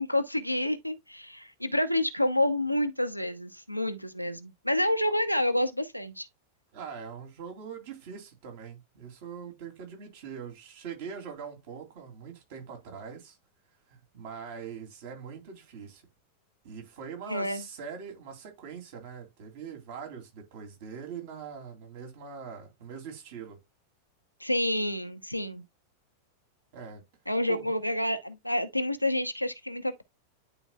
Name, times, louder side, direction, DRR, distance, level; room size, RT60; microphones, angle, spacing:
voice 1, 0.0-6.3 17.3-17.6 24.4-25.6 27.3-30.0, left 1 dB, 90° left, 0.8 m, -28 dB
voice 2, 6.7-13.4 13.9-16.0 16.6-23.6 26.7-27.0 27.4-27.9, right 6 dB, 50° right, 2.9 m, -42 dB
11.0 x 4.2 x 2.3 m
figure-of-eight pair, 90°, 0 cm